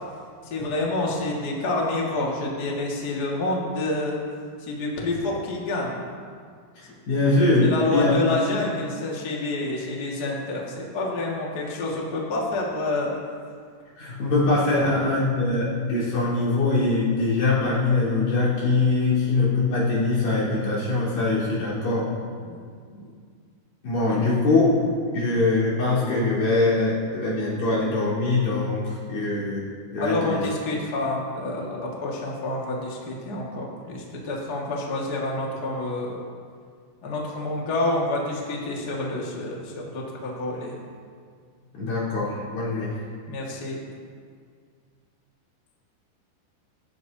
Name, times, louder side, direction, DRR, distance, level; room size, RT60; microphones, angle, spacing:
voice 1, 0.4-4.2 4.6-6.0 7.6-13.1 14.8-14.9 22.4-22.6 22.9-23.0 30.0-36.2 37.0-40.8 43.3-43.8, left 2 dB, 85° left, -3 dB, 0.8 m, -28 dB
voice 2, 7.1-8.3 14.0-22.1 23.8-24.8 25.1-29.7 29.9-30.4 41.7-42.9, left 2 dB, 55° left, -9 dB, 5.5 m, -22 dB
27.0 x 9.4 x 2.8 m, 2.1 s
omnidirectional pair, 5.2 m